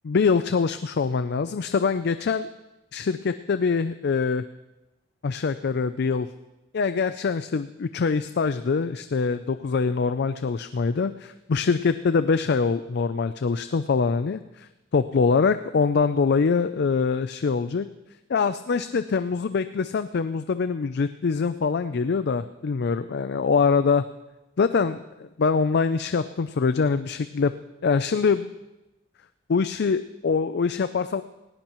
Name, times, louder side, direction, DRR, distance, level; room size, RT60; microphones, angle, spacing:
voice 1, 0.0-2.5 2.9-4.4 5.2-6.3 6.7-17.9 18.3-24.0 24.6-27.5 27.8-28.5 29.5-31.2, left 5 dB, 60° left, 12 dB, 0.4 m, -24 dB
18.5 x 17.5 x 3.1 m, 0.99 s
head